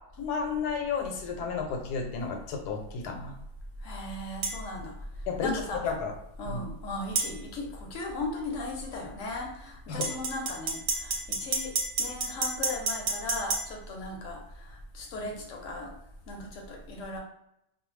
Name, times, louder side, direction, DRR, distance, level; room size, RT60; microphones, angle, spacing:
voice 1, 0.2-3.3 5.3-5.5 5.8-6.1 6.4-6.6 9.9-10.2, left 5 dB, 80° left, 3 dB, 1.1 m, -32 dB
voice 2, 3.8-4.9 5.4-5.8 6.4-11.7 12.0-15.9 16.3-17.2, left 2 dB, 65° left, 0 dB, 0.8 m, -37 dB
sound 1, 4.4-4.6 7.2-7.3 10.0-13.6, right 4 dB, 75° right, 1.0 m, -29 dB
2.6 x 2.1 x 3.0 m, 0.82 s
omnidirectional pair, 1.7 m